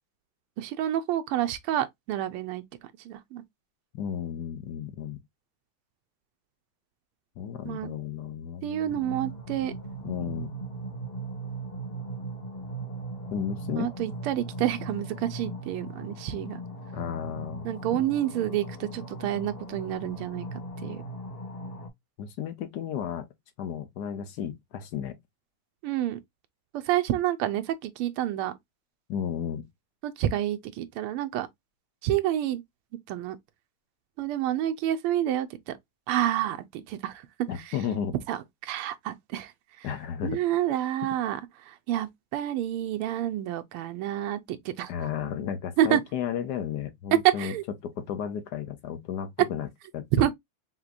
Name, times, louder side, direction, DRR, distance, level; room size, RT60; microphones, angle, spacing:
voice 1, 0.6-2.6 3.0-3.4 7.6-7.9 8.6-9.7 13.7-16.6 17.6-20.5 20.8-21.0 25.8-26.2 26.7-28.6 30.0-31.5 32.0-32.6 33.1-33.4 34.2-35.8 36.1-37.3 37.6-37.8 38.3-39.5 39.8-39.9 40.2-44.9 45.8-46.0 47.2-47.6 50.1-50.3, right 12 dB, 90° right, 1.5 m, -28 dB
voice 2, 3.9-5.2 7.4-8.9 10.0-10.5 13.3-13.9 16.9-17.7 22.2-23.3 23.6-25.2 29.1-29.6 37.5-38.1 39.8-40.4 44.9-47.5 47.8-49.7 49.9-50.3, left 8 dB, 65° left, 1.0 m, -33 dB
sound 1, 8.9-21.9, right 2 dB, 30° left, 1.3 m, -38 dB
5.9 x 2.9 x 2.4 m
omnidirectional pair, 2.4 m